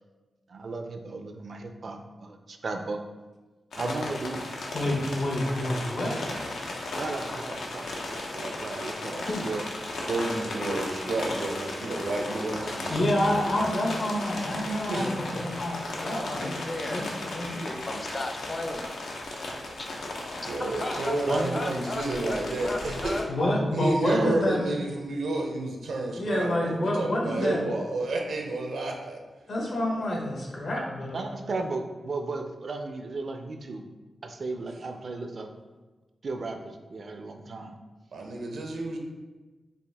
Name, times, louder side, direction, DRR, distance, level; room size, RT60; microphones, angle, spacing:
voice 1, 0.5-3.0 3.7-4.4 6.9-9.6 21.3-21.8 24.1-24.4 31.1-33.8 34.2-35.5 36.2-37.7, right 3 dB, 55° right, 5 dB, 0.4 m, -35 dB
sound 1, 3.7-23.2, left 2 dB, 90° left, 0.6 m, -35 dB
voice 2, 4.7-6.2 12.9-16.5 16.9-17.5 23.3-24.6 26.2-27.6 29.5-31.2, left 1 dB, 65° left, -1 dB, 1.0 m, -28 dB
voice 3, 9.1-9.5 15.9-18.9 19.8-19.9 20.6-23.6, left 2 dB, 30° left, 4 dB, 0.5 m, -36 dB
voice 4, 10.1-13.6 14.8-15.5 20.3-23.2 23.7-29.2 31.5-31.7 38.1-39.0, right 2 dB, 85° right, 1 dB, 0.7 m, -31 dB
5.2 x 2.5 x 3.4 m, 1.2 s
wide cardioid pair, 105°, 0 cm